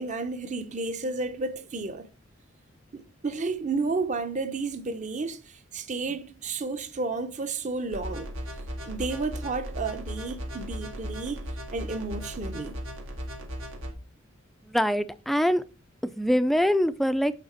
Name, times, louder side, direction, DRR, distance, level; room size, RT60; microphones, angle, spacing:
voice 1, 0.0-2.1 2.9-8.3 8.8-12.8, right 3 dB, 40° right, 0.7 m, -32 dB
sound 1, 7.9-13.9, equal, 85° right, 1.6 m, -37 dB
voice 2, 14.7-15.6 16.0-17.3, equal, ahead, 0.3 m, -24 dB
8.2 x 4.0 x 4.3 m
head